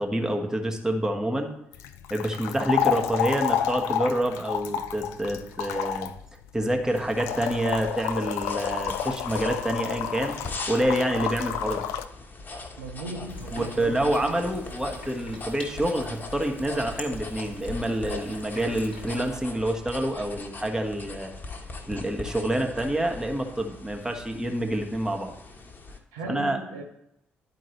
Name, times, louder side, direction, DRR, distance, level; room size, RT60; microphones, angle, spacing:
voice 1, 0.0-1.5 2.1-6.1 6.5-10.3 10.7-11.8 13.5-21.3 21.9-25.3 26.3-26.6, right 1 dB, 10° right, 1.2 m, -27 dB
sound 1, 1.7-12.0, left 9 dB, 65° left, 0.3 m, -30 dB
sound 2, 6.9-26.0, left 3 dB, 35° left, 1.1 m, -41 dB
voice 2, 12.8-14.4 26.1-26.8, right 3 dB, 75° right, 0.8 m, -37 dB
sound 3, 13.3-19.4, left 2 dB, 85° left, 1.1 m, -44 dB
11.0 x 4.6 x 3.1 m
figure-of-eight pair, 40°, 6 cm